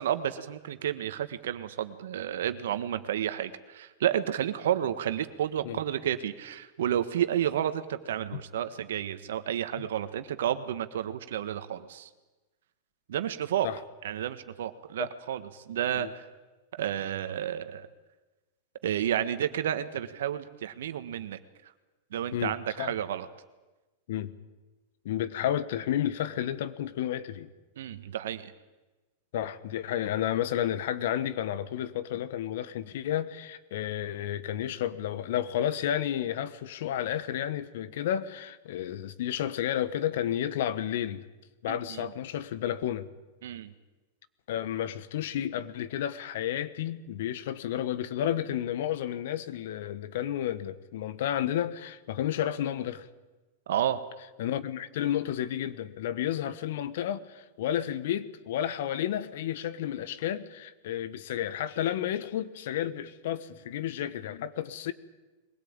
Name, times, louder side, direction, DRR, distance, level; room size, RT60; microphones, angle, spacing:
voice 1, 0.0-12.1 13.1-13.7 14.0-16.2 16.7-17.9 18.8-21.4 22.1-23.3 27.8-28.5 41.7-42.1 43.4-43.7 53.7-54.0, right 10 dB, 75° right, 1.4 m, -31 dB
voice 2, 22.3-22.9 24.1-24.3 25.0-27.5 29.3-41.2 41.6-43.1 44.5-53.1 54.4-64.9, left 11 dB, 70° left, 1.3 m, -31 dB
22.5 x 17.0 x 8.9 m
hypercardioid pair, 110°, 0 cm